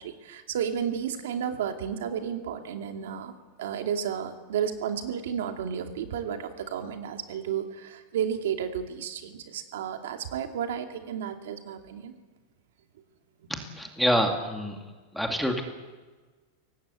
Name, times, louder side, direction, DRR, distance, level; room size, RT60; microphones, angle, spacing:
voice 1, 0.0-3.3 3.6-12.1, right 8 dB, 80° right, 5 dB, 2.5 m, -32 dB
voice 2, 13.5-14.8 15.1-15.6, equal, ahead, 3 dB, 2.1 m, -26 dB
23.0 x 18.5 x 8.3 m, 1.3 s
supercardioid pair, 170°, 0 cm